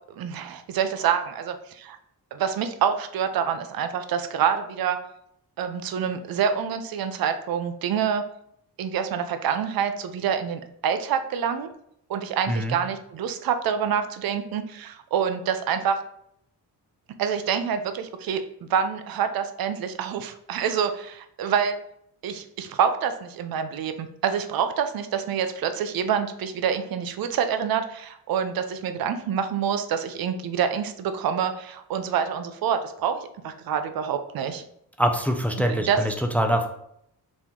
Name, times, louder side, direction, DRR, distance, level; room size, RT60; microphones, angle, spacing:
voice 1, 0.1-2.0 2.3-5.0 5.6-8.2 8.8-11.7 12.1-16.0 17.2-21.8 22.2-34.6 35.8-36.0, right 7 dB, 65° right, 9 dB, 0.5 m, -27 dB
voice 2, 35.0-36.7, equal, 5° left, 5 dB, 0.3 m, -24 dB
4.2 x 2.9 x 3.6 m, 0.72 s
wide cardioid pair, 145°, 39 cm